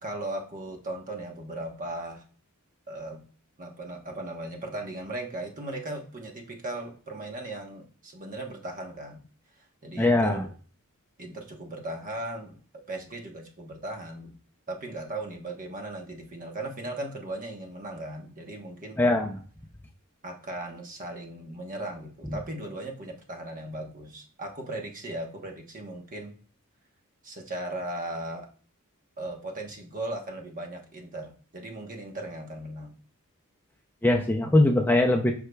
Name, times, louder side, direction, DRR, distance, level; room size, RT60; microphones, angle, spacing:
voice 1, 0.0-2.2 2.9-3.2 3.6-9.2 9.8-10.5 11.2-12.6 12.9-14.3 14.7-19.0 20.2-26.4 27.2-28.5 29.2-32.9, right 1 dB, 40° right, 2 dB, 1.2 m, -37 dB
voice 2, 10.0-10.4 19.0-19.3 34.0-35.3, left 2 dB, 10° left, 1 dB, 0.5 m, -21 dB
8.0 x 5.7 x 2.3 m, 0.42 s
head